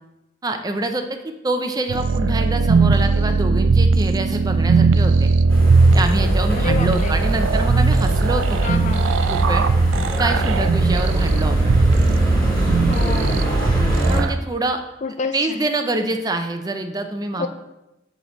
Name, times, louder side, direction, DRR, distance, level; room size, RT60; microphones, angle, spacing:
voice 1, 0.4-5.3 5.9-8.6 9.3-9.6 10.2-11.8 14.1-14.8 15.3-17.5, right 2 dB, 20° right, 6 dB, 0.5 m, -25 dB
sound 1, 1.9-14.4, right 4 dB, 85° right, 0.4 m, -18 dB
sound 2, 5.5-14.2, equal, 5° left, 2.0 m, -23 dB
voice 2, 6.5-7.2 8.6-9.3 12.9-13.6 15.0-15.6 17.4-17.5, left 4 dB, 40° left, 8 dB, 0.4 m, -29 dB
7.4 x 5.0 x 4.0 m, 0.95 s
head